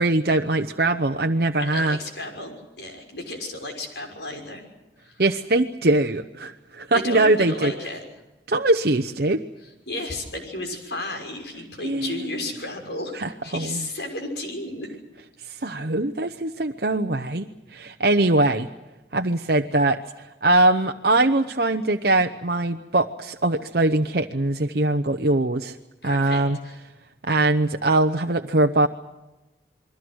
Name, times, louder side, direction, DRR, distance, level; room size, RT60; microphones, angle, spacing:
voice 1, 0.0-2.0 5.2-7.7 8.5-9.4 11.8-12.3 13.1-13.8 15.5-18.7 19.1-20.0 20.4-25.8 26.0-26.6 27.2-28.9, right 2 dB, 60° right, 5 dB, 0.9 m, -22 dB
voice 2, 1.6-4.6 5.0-5.2 6.9-8.0 9.9-14.9 26.0-26.7, left 2 dB, 80° left, 4 dB, 6.1 m, -33 dB
29.0 x 22.0 x 6.3 m, 1.1 s
head